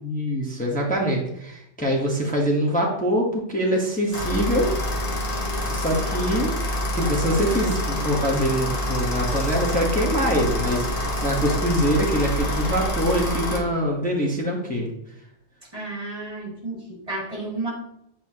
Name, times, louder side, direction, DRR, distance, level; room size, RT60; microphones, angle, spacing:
voice 1, 0.0-4.7 5.7-6.6 6.9-14.9, equal, 5° left, -2 dB, 0.9 m, -24 dB
sound 1, 4.1-13.6, left 1 dB, 45° left, 1.1 m, -26 dB
voice 2, 15.7-17.7, right 2 dB, 30° right, -4 dB, 2.0 m, -32 dB
8.0 x 4.5 x 2.8 m, 0.78 s
omnidirectional pair, 1.4 m